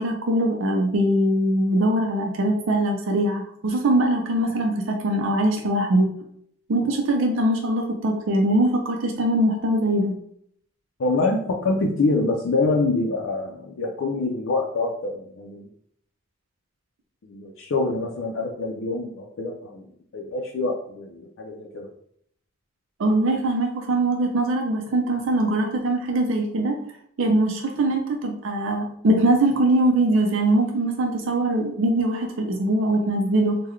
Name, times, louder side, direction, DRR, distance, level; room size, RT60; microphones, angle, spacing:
voice 1, 0.0-6.1 6.7-10.2 23.0-26.8 27.2-33.6, right 1 dB, 85° right, 2 dB, 0.5 m, -22 dB
voice 2, 11.0-15.7 17.2-19.9 20.1-21.9, left 3 dB, 85° left, 0 dB, 0.4 m, -25 dB
3.7 x 2.2 x 3.1 m, 0.66 s
head